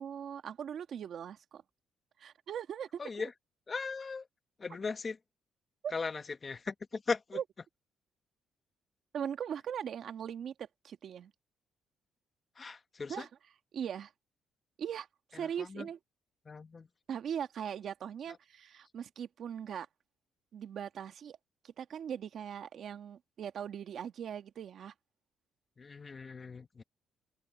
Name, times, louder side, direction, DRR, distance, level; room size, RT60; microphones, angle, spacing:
voice 1, 0.0-1.6 2.2-3.3 5.8-5.9 7.3-7.4 9.1-11.3 13.1-13.3 13.7-14.1 14.8-16.0 17.1-19.9 20.5-21.4 21.6-24.9, right 8 dB, 65° right, 1.6 m, -40 dB
voice 2, 3.0-3.3 3.7-4.3 4.6-5.2 5.9-7.4 12.6-13.2 15.6-15.9 16.4-16.9 25.8-26.8, left 4 dB, 35° left, 1.5 m, -38 dB
cardioid pair, 90°, 0 cm